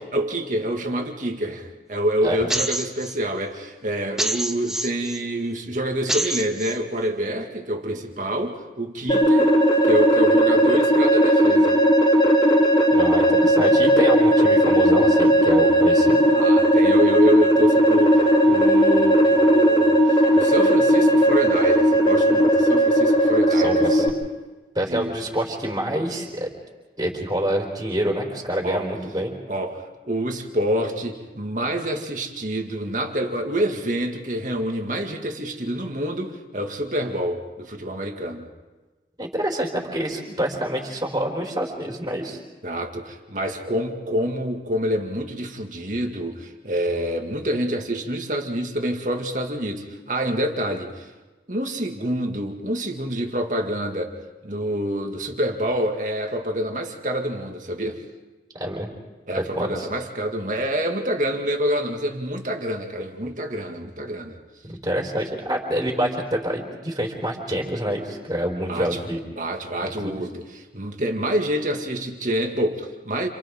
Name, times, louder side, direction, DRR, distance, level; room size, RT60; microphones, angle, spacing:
voice 1, 0.0-9.5 9.8-11.8 16.3-20.0 20.3-23.8 24.9-25.1 28.6-28.9 29.5-38.5 42.6-51.1 51.5-54.2 54.4-58.0 59.3-64.4 68.7-69.0 69.4-73.3, right 1 dB, 45° right, 3 dB, 2.3 m, -27 dB
sound 1, 2.5-3.2 4.2-5.2 6.1-6.8, right 1 dB, 5° right, 1.0 m, -26 dB
sound 2, 9.1-24.1, equal, 30° left, 3.9 m, -17 dB
voice 2, 12.9-16.2 23.5-24.1 24.7-26.5 27.0-29.3 39.2-42.4 58.5-58.9 59.3-59.9 64.6-69.2 70.0-70.2, equal, 20° right, -1 dB, 4.2 m, -27 dB
30.0 x 29.0 x 3.8 m, 1.2 s
head